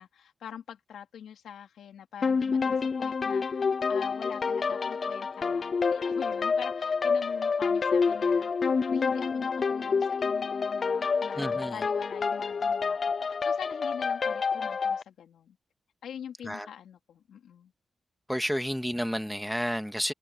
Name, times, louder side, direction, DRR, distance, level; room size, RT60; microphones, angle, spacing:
voice 1, 0.0-15.6 16.0-17.7, left 9 dB, 85° left, 3.7 m, -44 dB
sound 1, 2.2-15.0, left 5 dB, 55° left, 0.6 m, -28 dB
voice 2, 11.4-11.8 16.4-16.7 18.3-20.1, equal, ahead, 2.0 m, -31 dB
cardioid pair, 65°, 0 cm